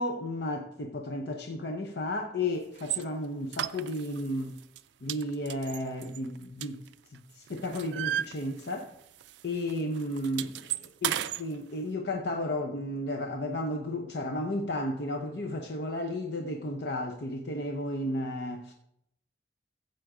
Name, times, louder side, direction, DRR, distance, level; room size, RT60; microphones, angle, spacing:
voice 1, 0.0-4.6 5.0-8.9 9.4-18.7, left 1 dB, 75° left, 0.7 m, -33 dB
sound 1, 2.8-3.0 3.5-4.3 4.6-4.8 5.1-7.2 7.5-9.0 9.2-9.4 9.7-11.4, right 11 dB, 85° right, 0.4 m, -34 dB
15.0 x 7.7 x 3.8 m
head